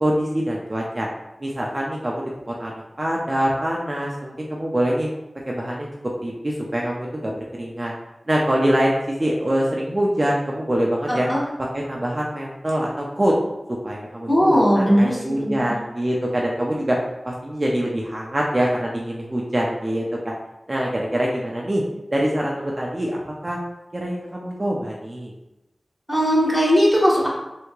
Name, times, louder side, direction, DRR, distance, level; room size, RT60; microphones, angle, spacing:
voice 1, 0.0-1.1 1.4-5.1 5.5-5.9 6.2-7.9 8.3-11.3 11.7-13.3 13.8-17.0 17.2-20.3 20.7-21.8 22.1-23.6 23.9-25.3, right 1 dB, 35° right, -3 dB, 0.5 m, -24 dB
voice 2, 11.1-11.4 14.3-15.8 26.1-27.3, equal, 10° left, -5 dB, 1.1 m, -18 dB
3.4 x 2.8 x 3.1 m, 0.96 s
wide cardioid pair, 75°, 0 cm